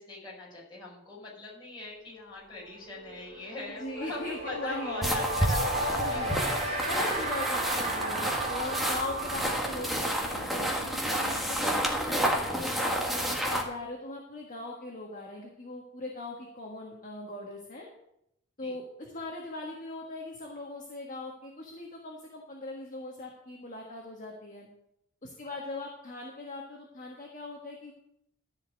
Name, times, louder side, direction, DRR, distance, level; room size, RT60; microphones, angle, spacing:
voice 1, 0.0-6.9 7.2-7.3 18.6-18.7, left 3 dB, 20° left, -5 dB, 5.3 m, -42 dB
sound 1, 2.1-2.3 2.6-13.2, right 2 dB, 30° right, 2.9 m, -35 dB
voice 2, 3.8-5.3 5.9-6.4 6.9-10.7 11.1-17.9 18.6-24.7 25.2-27.9, left 2 dB, 40° left, -1 dB, 1.6 m, -40 dB
sound 2, 5.0-13.6, equal, ahead, 1.5 m, -30 dB
13.5 x 5.2 x 7.5 m, 0.79 s
head